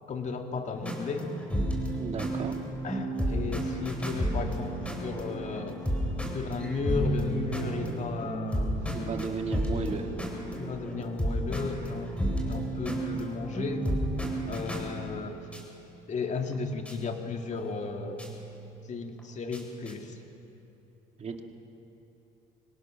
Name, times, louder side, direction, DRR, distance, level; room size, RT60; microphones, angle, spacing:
voice 1, 0.1-1.3 2.8-4.7 5.0-5.8 6.3-8.7 9.4-9.5 10.6-12.2 12.5-13.9 14.5-15.4 16.1-18.2 18.9-20.2, left 4 dB, 40° left, 4 dB, 2.1 m, -34 dB
sound 1, 0.7-15.7 16.5-16.6 16.8-16.9 17.5-19.9, right 1 dB, 5° left, 4.4 m, -33 dB
voice 2, 2.0-2.6 8.9-10.1 21.2-21.4, right 5 dB, 35° right, 4 dB, 2.1 m, -34 dB
24.0 x 18.0 x 6.4 m, 2.9 s
cardioid pair, 100°, 18 cm